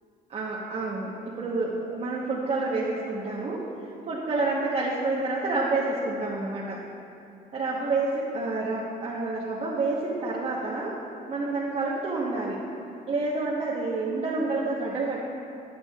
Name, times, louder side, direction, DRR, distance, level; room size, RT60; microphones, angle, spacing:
voice 1, 0.3-3.7 4.1-6.8 7.5-11.0 11.3-12.6 13.1-15.2, right 3 dB, 40° right, -5 dB, 1.1 m, -28 dB
14.0 x 9.3 x 2.4 m, 2.7 s
cardioid pair, 110°, 17 cm